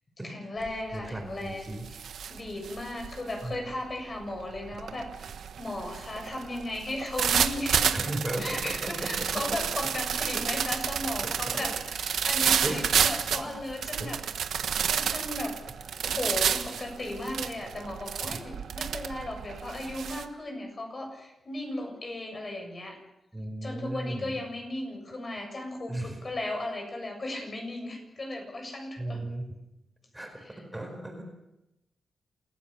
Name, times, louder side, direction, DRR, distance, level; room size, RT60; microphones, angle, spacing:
voice 1, 0.2-2.0 2.3-8.0 8.4-14.2 14.9-15.6 16.0-23.0 23.6-29.2 30.4-30.5, left 1 dB, 35° left, 3 dB, 7.5 m, -36 dB
sound 1, 0.6-0.9 1.3-20.2, right 8 dB, 90° right, 1.4 m, -30 dB
voice 2, 0.9-1.9 3.4-3.6 7.9-9.1 11.2-11.7 12.6-13.1 13.4-14.1 18.2-18.5 23.3-24.3 25.9-26.2 29.0-29.5 30.1-30.3 30.6-31.2, right 1 dB, 10° right, 3 dB, 4.9 m, -36 dB
28.0 x 15.5 x 7.4 m, 0.90 s
cardioid pair, 100°, 0 cm